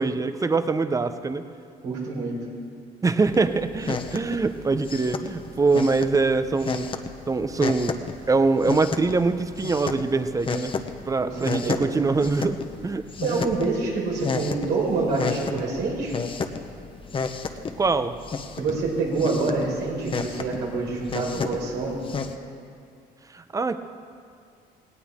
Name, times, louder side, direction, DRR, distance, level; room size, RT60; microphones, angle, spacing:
voice 1, 0.0-1.5 3.0-6.9 7.3-8.0 8.3-10.7 11.0-13.0 13.3-13.5 17.8-18.2 23.3-23.8, right 3 dB, 20° right, 10 dB, 0.7 m, -23 dB
voice 2, 1.8-2.5 11.2-11.3 11.6-11.9 13.2-16.2 18.5-22.0, right 3 dB, 80° right, -3 dB, 4.7 m, -26 dB
sound 1, 3.2-22.3, left 5 dB, 30° left, 0.9 m, -33 dB
18.0 x 18.0 x 3.7 m, 2.4 s
cardioid pair, 110°, 17 cm